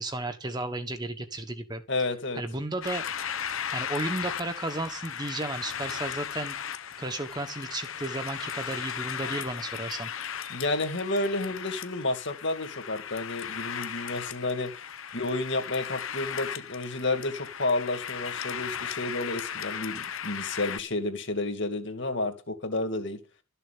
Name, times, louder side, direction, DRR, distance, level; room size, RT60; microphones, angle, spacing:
voice 1, 0.0-1.8 2.3-3.0 3.7-6.6 7.0-10.1, right 2 dB, 20° right, 7 dB, 1.2 m, -33 dB
voice 2, 1.9-2.4 10.5-14.7 15.1-23.2, left 2 dB, 55° left, 5 dB, 2.4 m, -31 dB
sound 1, 2.8-20.8, left 8 dB, 75° left, 0.9 m, -36 dB
13.0 x 6.9 x 8.5 m, 0.31 s
head